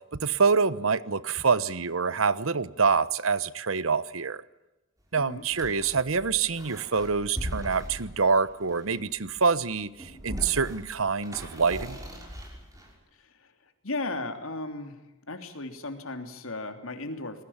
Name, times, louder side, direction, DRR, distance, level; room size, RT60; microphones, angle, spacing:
voice 1, 0.2-4.4 5.1-12.0, right 5 dB, 80° right, 16 dB, 1.1 m, -26 dB
voice 2, 5.2-5.5 13.2-13.5 13.8-15.0 15.3-17.4, left 2 dB, 85° left, 7 dB, 3.2 m, -36 dB
sound 1, 5.4-9.2 9.8-12.9, equal, 15° right, 6.0 m, -40 dB
27.5 x 20.5 x 7.4 m, 0.98 s
head